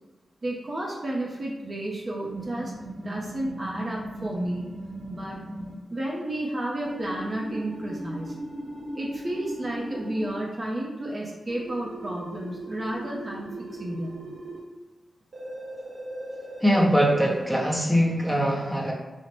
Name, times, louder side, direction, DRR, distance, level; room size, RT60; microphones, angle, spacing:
voice 1, 0.4-2.7 3.0-4.7 5.1-5.4 5.9-8.4 9.0-14.2, right 1 dB, 45° right, -3 dB, 0.6 m, -32 dB
sound 1, 2.3-5.7 6.8-10.3 11.5-14.6 15.3-17.7, right 1 dB, 65° right, 0.9 m, -38 dB
voice 2, 16.6-18.9, equal, ahead, -4 dB, 0.8 m, -22 dB
3.8 x 2.1 x 3.1 m, 1.1 s
cardioid pair, 70°, 0 cm